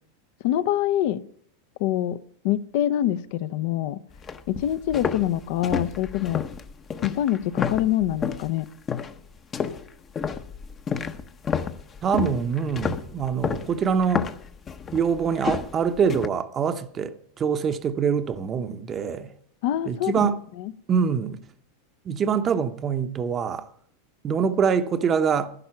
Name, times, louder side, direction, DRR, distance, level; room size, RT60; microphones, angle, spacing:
voice 1, 0.4-1.2 1.8-2.2 2.4-4.0 4.5-6.4 7.0-8.7 19.6-20.3 20.6-20.7, left 12 dB, 60° left, 0.6 m, -25 dB
sound 1, 4.1-8.5 8.9-9.2 9.5-16.3, left 6 dB, 25° left, 0.7 m, -30 dB
voice 2, 12.0-14.3 14.9-19.3 19.8-20.4 20.9-21.4 22.0-23.7 24.2-25.5, right 6 dB, 25° right, 0.7 m, -24 dB
11.5 x 11.0 x 5.8 m
supercardioid pair, 135°, 0 cm